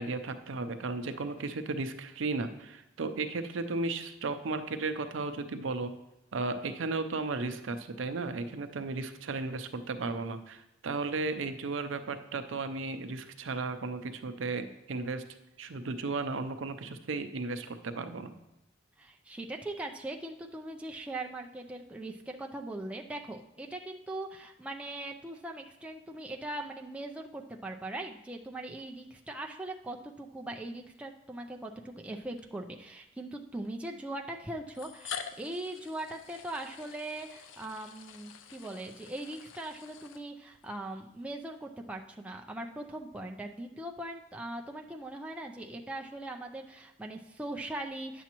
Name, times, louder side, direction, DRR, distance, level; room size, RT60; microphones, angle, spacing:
voice 1, 0.0-5.9 6.3-15.2 15.6-18.3, right 3 dB, 80° right, 9 dB, 0.6 m, -35 dB
voice 2, 19.0-48.2, right 1 dB, 5° right, 1 dB, 0.4 m, -40 dB
sound 1, 31.2-31.4 32.4-32.5 33.6-33.7 34.7-40.7, left 7 dB, 85° left, 0.5 m, -46 dB
9.3 x 7.1 x 3.0 m, 0.88 s
head